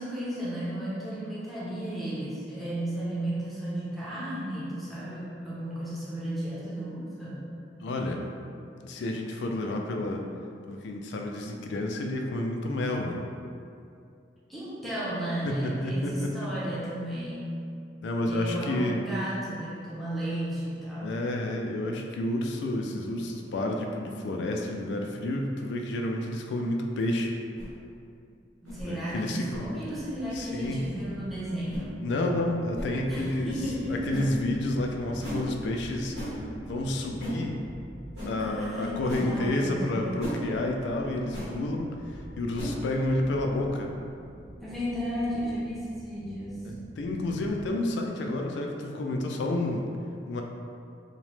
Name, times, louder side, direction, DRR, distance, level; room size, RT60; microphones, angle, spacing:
voice 1, 0.0-7.5 14.5-17.6 18.2-21.1 28.7-32.1 33.1-34.2 38.4-40.3 44.6-46.6, right 1 dB, ahead, -10 dB, 0.5 m, -34 dB
voice 2, 7.8-8.3 8.7-10.2 10.7-13.2 15.5-16.5 18.0-19.0 21.0-27.4 28.8-29.7 30.3-30.8 32.0-33.5 33.9-36.2 36.7-37.6 38.3-41.9 42.4-43.9 46.6-49.9 50.3-50.4, left 1 dB, 80° left, 2 dB, 0.3 m, -30 dB
sound 1, 27.5-27.7 28.6-28.8 29.5-29.7 30.6-30.7 31.7-31.9 32.7-32.9 34.1-34.3 35.2-35.4 36.1-36.3 37.2-37.4 38.1-38.3 39.1-39.3 40.2-40.4 41.3-41.5 42.5-42.7, left 1 dB, 85° right, 1.2 m, -36 dB
sound 2, 29.9-47.7, equal, 60° right, 0.7 m, -46 dB
sound 3, 32.6-37.7, left 1 dB, 45° right, 1.4 m, -50 dB
2.9 x 2.1 x 3.1 m, 2.4 s
head